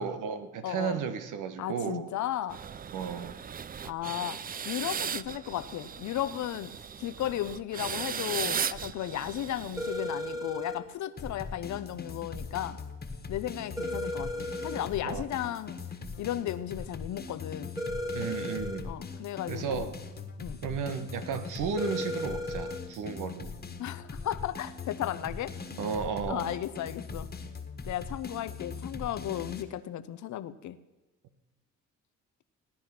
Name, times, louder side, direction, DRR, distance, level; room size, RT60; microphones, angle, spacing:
voice 1, 0.0-2.1 2.9-3.4 15.0-15.2 18.1-18.9 19.5-19.9 20.6-23.5 25.8-26.6, right 6 dB, 85° right, 9 dB, 1.3 m, -34 dB
voice 2, 0.6-1.0 1.6-2.6 3.8-6.7 7.0-12.8 13.3-15.8 16.2-17.7 18.8-19.9 20.4-20.6 23.8-25.5 26.3-27.3 27.8-30.8, left 12 dB, 70° left, 14 dB, 0.8 m, -35 dB
sound 1, 2.5-10.5, right 7 dB, 30° right, 0.4 m, -37 dB
sound 2, 9.8-10.8 13.8-14.8 17.8-18.8 21.8-22.8, left 1 dB, 10° right, 1.6 m, -35 dB
sound 3, 11.2-29.6, left 4 dB, 30° left, 1.7 m, -41 dB
16.5 x 10.0 x 6.0 m, 1.1 s
cardioid pair, 90°, 30 cm